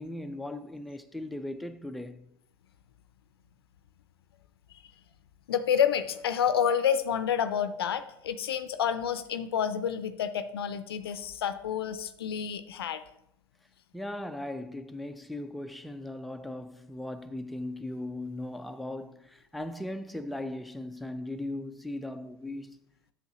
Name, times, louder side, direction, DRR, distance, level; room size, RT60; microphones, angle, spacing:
voice 1, 0.0-2.3 13.9-22.8, left 1 dB, ahead, 0.4 m, -38 dB
voice 2, 5.5-13.0, left 8 dB, 80° left, 0.5 m, -29 dB
8.0 x 6.3 x 2.9 m
hypercardioid pair, 75°, 13 cm